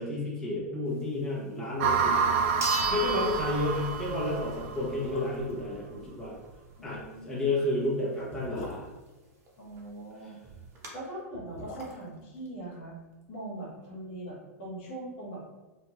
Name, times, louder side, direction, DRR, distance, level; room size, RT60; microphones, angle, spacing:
voice 1, 0.0-2.3 2.9-6.4 6.8-8.9, left 2 dB, 5° left, -8 dB, 1.3 m, -31 dB
sound 1, 1.7-2.3 2.6-2.7 3.1-3.3 4.0-4.1 4.7-5.7 7.2-9.8 11.1-13.3 13.6-13.7, left 2 dB, 65° left, 0.9 m, -46 dB
sound 2, 1.8-1.9 2.6-4.4 4.8-4.9 9.5-9.6 9.8-9.9 10.4-10.9, right 2 dB, 30° right, 0.8 m, -36 dB
sound 3, 1.8-5.1, right 6 dB, 45° right, 0.4 m, -28 dB
voice 2, 6.8-7.5 9.6-10.4 10.9-13.0 13.3-15.4, right 1 dB, 50° left, -5 dB, 1.2 m, -41 dB
4.2 x 2.6 x 2.4 m, 1.1 s
figure-of-eight pair, 95°, 8 cm